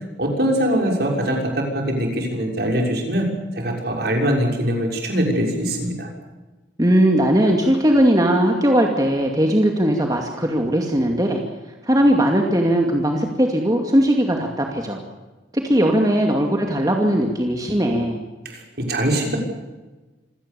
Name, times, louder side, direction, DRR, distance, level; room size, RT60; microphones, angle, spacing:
voice 1, 0.2-3.3 3.5-6.1 18.4-19.4, equal, 60° right, 1 dB, 6.2 m, -22 dB
voice 2, 6.8-11.4 11.8-15.0 15.5-18.2, equal, 20° right, 2 dB, 2.4 m, -19 dB
26.5 x 17.5 x 7.1 m, 1.2 s
head